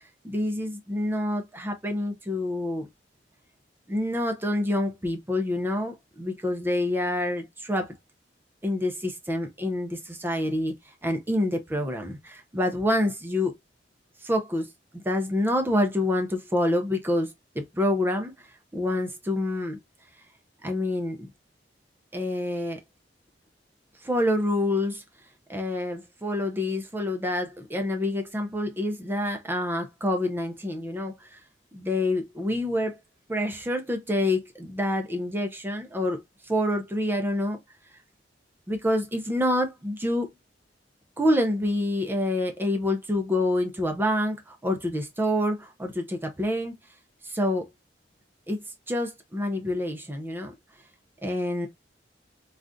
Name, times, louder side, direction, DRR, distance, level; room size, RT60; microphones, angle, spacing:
voice 1, 0.2-2.9 3.9-7.9 8.6-10.7 11.0-13.5 14.2-18.5 18.7-19.8 20.6-21.3 22.1-22.8 24.0-25.0 25.5-31.4 31.7-33.0 33.3-37.6 38.7-40.3 41.2-46.7 47.2-47.7 48.5-50.5 51.2-51.7, left 1 dB, 10° right, 0.5 m, -27 dB
3.5 x 2.4 x 2.4 m
head